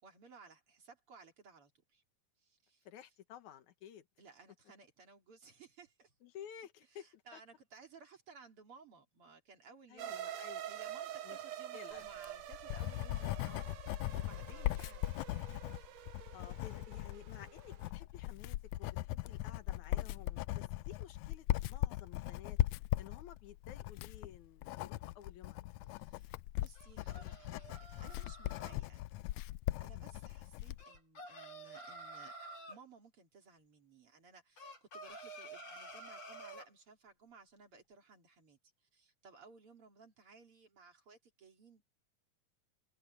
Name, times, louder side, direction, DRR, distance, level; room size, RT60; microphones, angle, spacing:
voice 1, 0.0-2.0 2.4-2.9 4.2-6.1 6.9-10.2 10.6-16.0 25.9-29.0 29.8-32.3 32.7-41.8, right 4 dB, 45° right, 3.7 m, -59 dB
voice 2, 2.9-4.1 6.2-7.4 9.9-10.6 11.2-11.4 11.7-12.1 14.5-14.7 16.3-22.6 23.0-26.0 28.6-28.8 29.9-30.1, left 10 dB, 70° left, 2.6 m, -54 dB
sound 1, 10.0-17.9, right 11 dB, 80° right, 3.0 m, -47 dB
Writing, 12.1-30.8, left 16 dB, 90° left, 1.5 m, -39 dB
sound 2, 26.8-28.8 30.8-32.8 34.6-36.7, right 1 dB, 55° left, 5.3 m, -50 dB
omnidirectional pair, 3.7 m